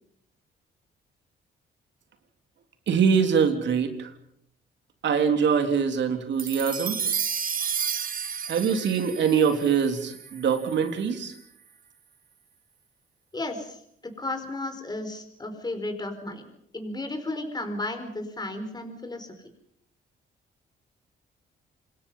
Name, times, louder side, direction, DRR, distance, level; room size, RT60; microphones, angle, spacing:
voice 1, 2.9-4.1 5.0-7.0 8.5-11.3, right 6 dB, 65° right, 6 dB, 3.6 m, -23 dB
sound 1, 6.4-10.9, right 7 dB, 45° right, 1.8 m, -32 dB
voice 2, 13.3-16.4 16.7-19.3, left 2 dB, 20° left, 6 dB, 4.7 m, -34 dB
27.0 x 21.5 x 5.7 m, 0.70 s
cardioid pair, 90°, 20 cm